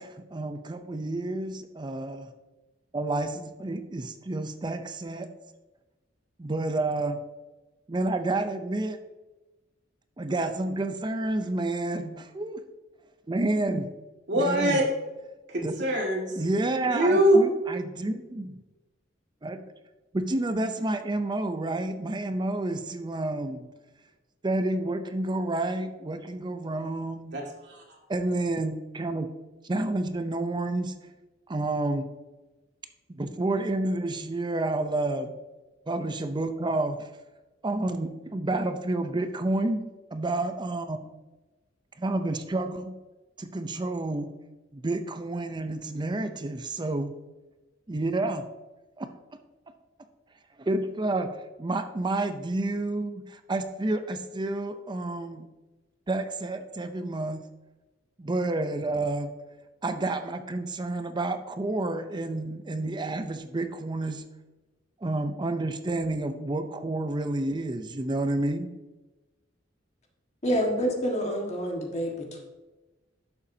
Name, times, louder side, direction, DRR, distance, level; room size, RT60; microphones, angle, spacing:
voice 1, 0.0-2.3 2.9-5.3 6.4-7.2 7.9-9.0 10.2-12.6 13.3-13.9 14.3-14.8 15.6-15.8 16.4-18.5 19.4-19.6 20.1-23.7 24.4-27.3 28.1-29.3 29.6-30.9 31.5-32.1 33.1-35.3 35.9-37.1 37.6-41.2 42.0-43.0 43.4-44.3 44.7-47.1 47.9-48.4 49.0-49.1 50.6-51.3 51.6-55.4 56.1-57.5 58.2-59.3 59.8-64.2 65.0-68.7, right 2 dB, 25° right, 8 dB, 0.6 m, -29 dB
voice 2, 14.3-14.9 15.5-16.3 16.9-17.4 27.3-27.8, right 1 dB, 65° right, 0 dB, 2.1 m, -23 dB
voice 3, 70.4-72.4, equal, 35° left, 1 dB, 1.6 m, -28 dB
12.0 x 7.0 x 2.8 m, 1.1 s
head